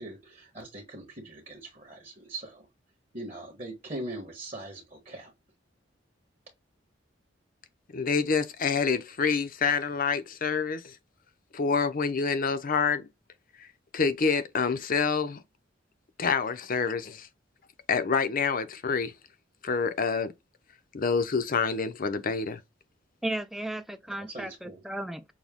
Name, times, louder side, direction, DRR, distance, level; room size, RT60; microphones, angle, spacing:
voice 1, 0.0-2.7 3.1-5.3 24.2-24.8, right 1 dB, 35° right, 1.4 m, -41 dB
voice 2, 7.9-11.0 11.5-13.1 13.9-15.4 16.2-17.3 17.9-19.1 19.6-20.3 20.9-22.6, left 5 dB, 50° left, 0.6 m, -27 dB
voice 3, 23.2-25.2, right 1 dB, ahead, 0.4 m, -34 dB
6.2 x 2.2 x 3.6 m
head